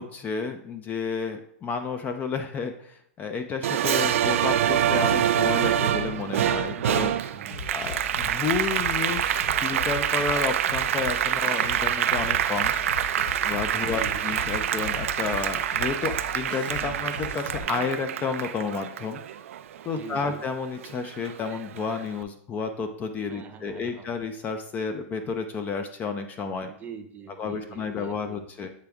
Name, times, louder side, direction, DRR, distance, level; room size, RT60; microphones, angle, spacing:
voice 1, 0.0-7.1 7.7-12.7 13.4-19.2 19.8-26.7 27.4-28.7, left 5 dB, 25° left, 7 dB, 0.5 m, -31 dB
Applause, 3.6-20.4 20.8-22.0, right 10 dB, 80° right, 0.4 m, -26 dB
voice 2, 6.7-7.7 13.8-14.2 19.9-20.4 23.3-24.2 26.7-28.5, right 6 dB, 25° right, 6 dB, 0.7 m, -44 dB
sound 1, 7.5-17.6, left 3 dB, 70° left, 1.4 m, -39 dB
8.3 x 3.4 x 3.5 m, 0.66 s
hypercardioid pair, 140°, 7 cm